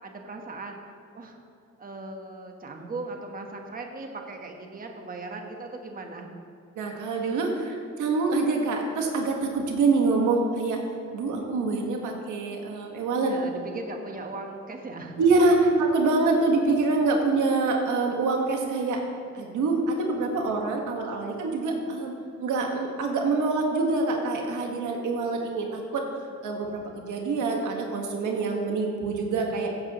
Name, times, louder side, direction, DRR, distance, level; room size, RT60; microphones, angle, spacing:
voice 1, 0.0-0.8 1.1-1.4 1.8-6.3 13.3-15.1 15.6-15.7 20.3-20.4, right 3 dB, 30° right, 3 dB, 1.2 m, -38 dB
voice 2, 6.8-10.8 11.1-13.3 15.2-19.0 19.3-22.1 22.4-26.0 26.4-29.7, right 3 dB, 80° right, 1 dB, 1.6 m, -25 dB
15.0 x 9.5 x 3.0 m, 2.6 s
cardioid pair, 90°, 30 cm